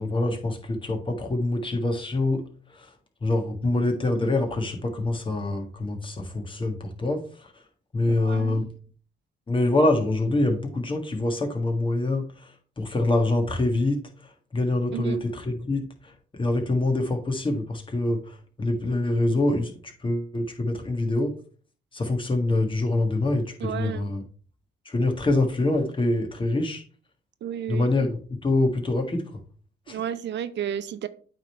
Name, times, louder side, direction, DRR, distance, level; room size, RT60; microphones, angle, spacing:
voice 1, 0.0-2.4 2.7-2.9 3.2-7.5 7.9-8.7 9.5-14.0 14.5-15.9 16.3-21.3 21.9-24.2 24.8-26.8 27.7-29.2 29.9-30.0, left 2 dB, 25° left, 3 dB, 1.6 m, -25 dB
voice 2, 8.1-8.6 14.9-15.2 23.6-24.1 27.4-27.9 29.9-31.1, right 9 dB, 65° right, 13 dB, 0.6 m, -32 dB
8.6 x 3.7 x 4.4 m, 0.43 s
cardioid pair, 90°, 20 cm